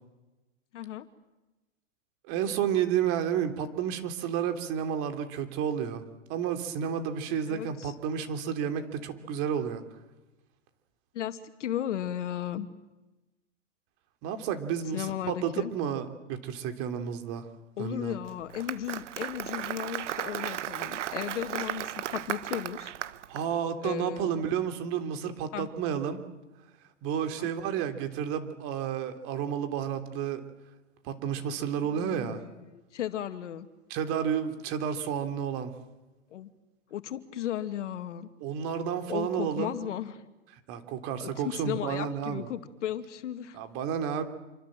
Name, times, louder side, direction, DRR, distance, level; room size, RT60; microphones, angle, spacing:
voice 1, 0.7-1.1 7.5-7.9 11.1-12.7 14.9-15.7 17.8-22.9 23.8-24.4 25.5-25.7 27.4-27.5 31.8-33.7 36.3-36.5 36.9-38.3 39.0-40.2 41.2-43.6, left 11 dB, 70° left, 9 dB, 2.3 m, -35 dB
voice 2, 2.3-6.0 6.3-9.8 14.2-17.5 17.8-18.2 23.3-26.2 27.0-30.4 31.0-32.4 33.9-35.7 38.4-39.7 40.7-42.5 43.5-44.2, right 8 dB, 35° right, 8 dB, 3.2 m, -31 dB
Applause, 18.3-23.4, right 11 dB, 70° right, 1.3 m, -35 dB
27.5 x 25.0 x 7.6 m, 1.1 s
hypercardioid pair, 135°, 37 cm